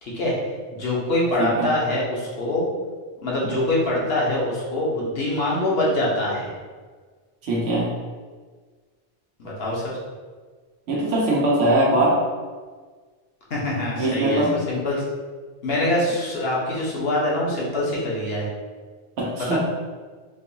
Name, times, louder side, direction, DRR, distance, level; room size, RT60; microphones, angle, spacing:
voice 1, 0.0-0.3 0.7-2.6 3.2-6.5 9.4-9.8 13.5-15.0 15.6-18.5 19.4-19.6, left 1 dB, 60° left, -5 dB, 1.1 m, -24 dB
voice 2, 7.4-7.9 10.9-12.2 14.0-14.6 19.2-19.6, right 1 dB, 90° right, -4 dB, 1.0 m, -21 dB
3.8 x 2.6 x 2.7 m, 1.5 s
omnidirectional pair, 1.2 m